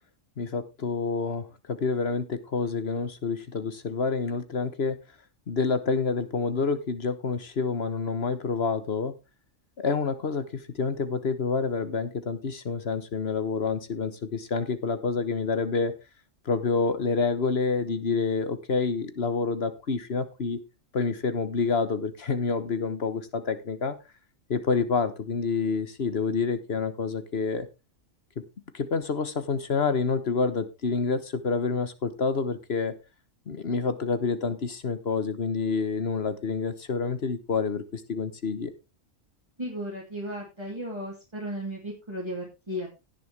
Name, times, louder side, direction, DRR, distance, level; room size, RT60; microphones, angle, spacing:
voice 1, 0.4-5.0 5.5-9.1 9.8-15.9 16.4-20.6 20.9-23.9 24.5-27.7 28.7-32.9 33.5-38.7, left 4 dB, 50° left, 11 dB, 1.4 m, -28 dB
voice 2, 39.6-42.9, equal, 20° right, -3 dB, 2.9 m, -35 dB
16.5 x 6.9 x 3.4 m, 0.26 s
omnidirectional pair, 1.4 m